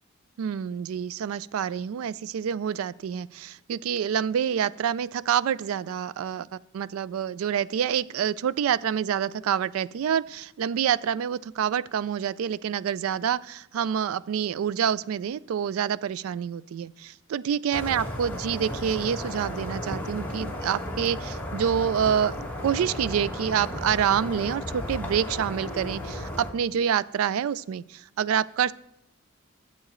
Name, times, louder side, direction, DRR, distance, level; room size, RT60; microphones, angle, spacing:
voice 1, 0.4-22.3 22.6-28.7, right 8 dB, 80° right, 19 dB, 0.3 m, -27 dB
sound 1, 17.7-26.5, left 1 dB, 10° left, 1.5 m, -34 dB
12.5 x 7.6 x 3.1 m, 0.82 s
head